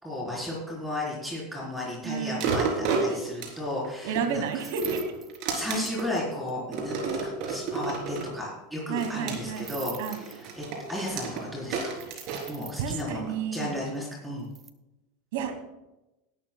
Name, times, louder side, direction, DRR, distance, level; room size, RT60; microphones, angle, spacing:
voice 1, 0.0-4.7 5.5-11.9 12.5-14.5, left 1 dB, 10° right, -4 dB, 4.3 m, -34 dB
voice 2, 2.0-2.6 3.1-3.2 4.0-5.0 6.9-7.2 8.9-10.2 12.8-13.8 15.3-15.6, right 6 dB, 70° right, 6 dB, 2.3 m, -32 dB
sound 1, 2.4-4.3 4.7-6.1 6.7-8.3 9.0-13.2 13.7-13.8, right 5 dB, 55° right, 3.8 m, -32 dB
sound 2, 4.5-6.2 6.5-6.6 6.8-6.9 7.1-7.2 7.4-7.5 9.5-10.8 12.0-13.0 14.4-14.7, right 8 dB, 30° right, 1.0 m, -44 dB
17.5 x 12.0 x 2.3 m, 0.98 s
hypercardioid pair, 110°, 0 cm